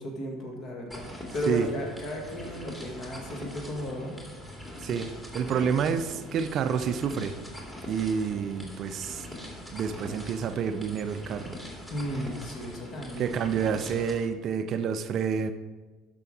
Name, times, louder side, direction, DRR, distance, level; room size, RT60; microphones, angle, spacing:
voice 1, 0.0-4.1 11.9-13.4, equal, 45° left, 1 dB, 2.0 m, -34 dB
sound 1, 0.9-14.2, left 1 dB, 15° left, 2.3 m, -42 dB
voice 2, 5.3-7.3 7.9-9.3 9.7-11.6 13.2-15.5, right 7 dB, 45° right, 10 dB, 0.5 m, -28 dB
12.0 x 5.8 x 3.8 m, 1.3 s
figure-of-eight pair, 65°, 0 cm